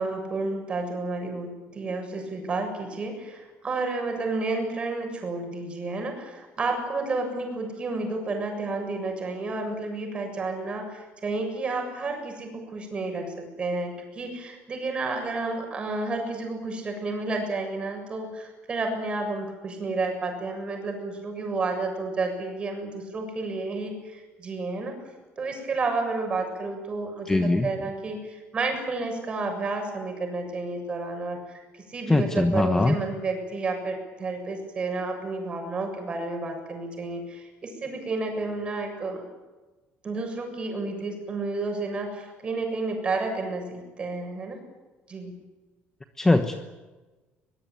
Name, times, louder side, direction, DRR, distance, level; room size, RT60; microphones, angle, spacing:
voice 1, 0.0-25.0 25.4-39.2 40.0-44.6 45.1-45.3, right 3 dB, 25° right, 4 dB, 7.2 m, -31 dB
voice 2, 27.3-27.7 32.1-33.0 46.2-46.6, left 2 dB, 10° left, 7 dB, 1.2 m, -21 dB
23.5 x 21.0 x 9.2 m, 1.2 s
cardioid pair, 160°, 4 cm